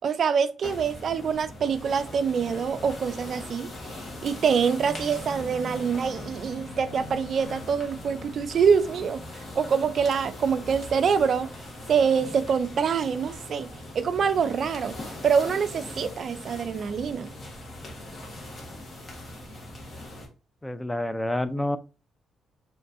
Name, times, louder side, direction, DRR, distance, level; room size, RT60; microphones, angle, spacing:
voice 1, 0.0-11.5 11.9-13.7 13.9-15.0 15.2-17.3, right 6 dB, 55° right, 0.3 m, -25 dB
sound 1, 0.6-20.3, left 1 dB, 40° left, 1.4 m, -40 dB
voice 2, 20.6-21.8, left 1 dB, 10° left, 0.4 m, -28 dB
5.1 x 3.1 x 2.5 m
cardioid pair, 90°, 0 cm